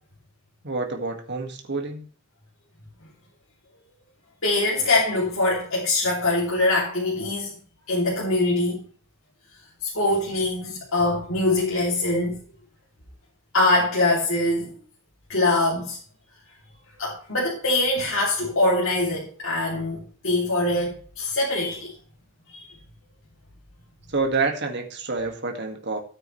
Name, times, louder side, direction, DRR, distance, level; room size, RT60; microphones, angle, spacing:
voice 1, 0.6-2.0 24.1-26.0, right 3 dB, 55° right, 3 dB, 1.9 m, -27 dB
voice 2, 4.4-7.5 7.9-8.8 9.8-12.4 13.5-14.7 15.3-16.0 17.0-21.9 22.5-22.6, left 2 dB, 65° left, -5 dB, 2.9 m, -23 dB
13.5 x 8.8 x 3.2 m, 0.42 s
head